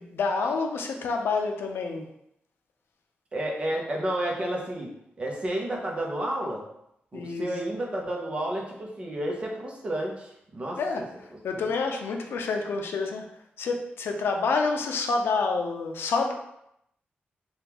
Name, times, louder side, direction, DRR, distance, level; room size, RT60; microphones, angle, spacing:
voice 1, 0.0-2.1 7.1-7.5 10.8-13.3 13.6-16.3, left 4 dB, 90° left, 3 dB, 0.4 m, -28 dB
voice 2, 3.3-4.9 5.2-6.6 7.1-11.0 11.6-11.7, right 1 dB, 30° right, -1 dB, 0.6 m, -31 dB
3.5 x 2.3 x 2.9 m, 0.79 s
wide cardioid pair, 170°, 4 cm